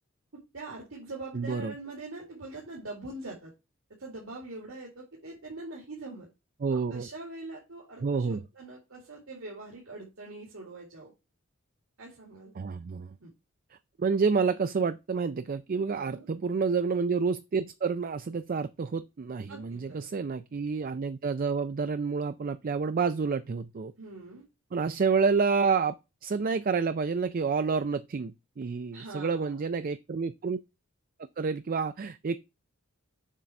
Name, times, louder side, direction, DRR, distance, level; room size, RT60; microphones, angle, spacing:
voice 1, 0.3-3.5 4.0-6.3 6.7-11.1 12.0-12.5 13.2-13.3 15.9-16.2 19.5-20.1 24.0-24.4 28.9-29.6, right 2 dB, 70° right, 2.2 m, -43 dB
voice 2, 1.3-1.7 6.6-7.1 8.0-8.5 12.5-13.1 14.0-23.9 24.7-26.0 26.2-30.6 31.4-32.4, right 5 dB, 45° right, 0.4 m, -29 dB
7.4 x 4.0 x 5.9 m
head